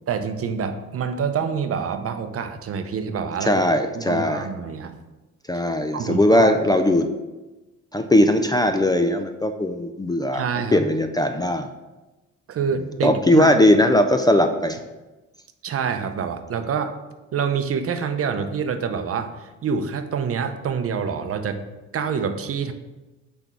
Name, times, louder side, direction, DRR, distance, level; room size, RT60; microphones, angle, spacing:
voice 1, 0.1-3.6 3.9-4.9 5.9-6.5 10.3-10.8 12.5-13.5 15.6-17.0 17.3-21.6 21.9-22.7, right 6 dB, 50° right, 8 dB, 0.6 m, -26 dB
voice 2, 3.4-4.5 5.5-7.1 7.9-10.4 10.7-11.7 13.0-14.8, left 1 dB, 15° left, 7 dB, 0.4 m, -19 dB
6.0 x 3.4 x 5.8 m, 1.1 s
cardioid pair, 90°, 30 cm